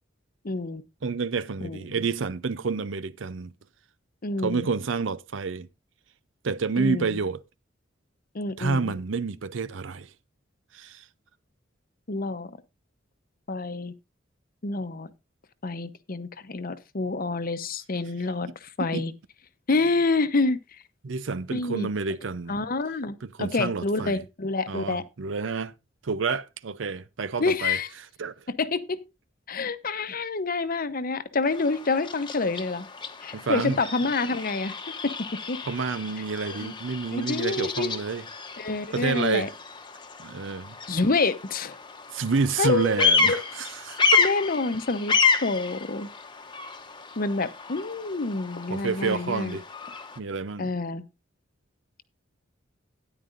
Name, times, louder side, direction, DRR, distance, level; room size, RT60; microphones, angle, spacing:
voice 1, 0.4-0.8 1.6-2.1 4.2-4.7 6.8-7.2 8.3-8.9 12.1-12.6 13.5-13.9 14.6-15.1 15.6-19.1 19.7-20.8 21.5-21.9 22.5-25.0 27.4-27.9 28.6-29.0 29.5-32.9 33.2-34.7 35.0-35.1 35.5-35.6 36.6-36.8 37.1-37.9 38.6-39.5 40.9-41.8 42.6-43.4 44.2-45.1 45.4-46.1 47.2-49.6 50.6-51.0, left 3 dB, 45° left, 0.8 m, -27 dB
voice 2, 1.0-3.5 4.4-5.7 6.4-7.4 8.6-10.1 10.7-11.0 18.8-19.0 21.0-22.6 23.4-24.2 24.7-25.7 26.0-27.8 28.2-28.4 33.3-33.8 35.7-38.2 38.9-39.5 40.2-40.8 42.1-44.2 48.7-49.6 50.2-50.7, right 4 dB, 70° right, 0.6 m, -29 dB
Bird vocalization bird call bird song, 31.4-50.2, left 5 dB, 25° left, 1.0 m, -30 dB
13.0 x 10.0 x 2.6 m
head